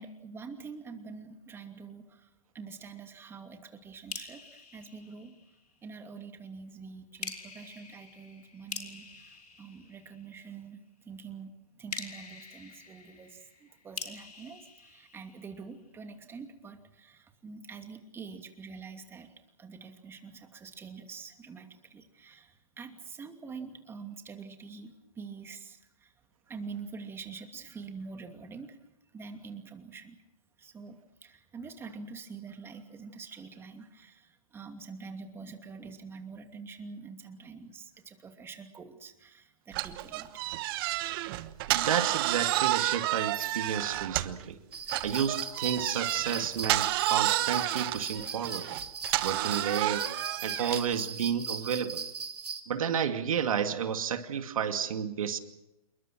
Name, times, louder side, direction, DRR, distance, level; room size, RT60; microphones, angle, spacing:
voice 1, 0.0-2.3 2.5-5.3 5.8-10.8 11.0-11.5 11.8-19.3 19.6-26.1 26.5-28.8 29.1-30.2 30.6-40.4, right 5 dB, 10° right, 6 dB, 2.6 m, -46 dB
sound 1, 4.1-5.8 7.2-10.5 11.9-15.8, left 4 dB, 85° left, 4.8 m, -45 dB
sound 2, 39.7-44.5 44.9-50.9, right 17 dB, 35° right, 1.2 m, -30 dB
voice 2, 41.7-44.6 45.0-48.7 49.2-50.1 50.4-52.0 52.7-55.4, right 8 dB, 60° right, 7 dB, 2.3 m, -31 dB
sound 3, 44.7-52.6, right 5 dB, 80° right, 3.0 m, -38 dB
28.5 x 22.5 x 6.3 m, 0.89 s
hypercardioid pair, 130°, 20 cm